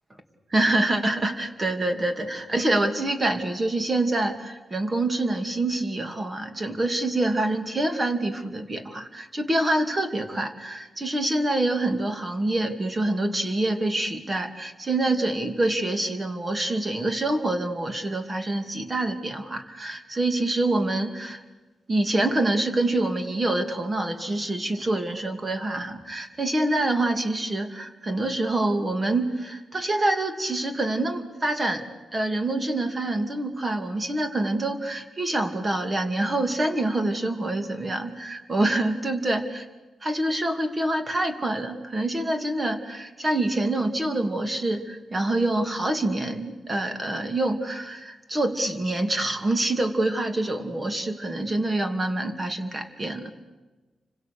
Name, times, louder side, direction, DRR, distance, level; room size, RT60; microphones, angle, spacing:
voice 1, 0.5-21.4 21.9-31.8 32.1-39.6 40.0-53.3, right 2 dB, 25° right, 6 dB, 2.8 m, -26 dB
30.0 x 26.0 x 6.8 m, 1.2 s
cardioid pair, 110°, 0 cm